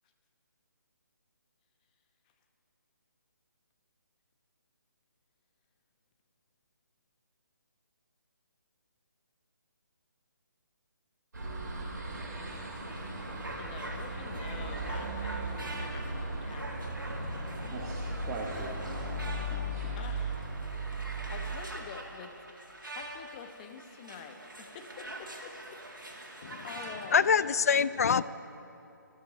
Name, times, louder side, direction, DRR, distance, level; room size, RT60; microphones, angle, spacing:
sound 1, 11.3-21.6, right 1 dB, 60° right, 3.0 m, -37 dB
sound 2, 12.5-27.4, right 1 dB, 80° right, 1.9 m, -45 dB
voice 1, 13.5-16.7 20.0-20.4 20.9-22.3 22.9-25.8 26.0-27.2, left 6 dB, 25° left, 6 dB, 0.9 m, -47 dB
voice 2, 17.7-20.0, right 2 dB, 15° right, -4 dB, 1.1 m, -41 dB
voice 3, 27.1-28.2, left 6 dB, 50° left, 16 dB, 0.4 m, -25 dB
13.5 x 12.5 x 5.1 m, 2.8 s
figure-of-eight pair, 145°, 11 cm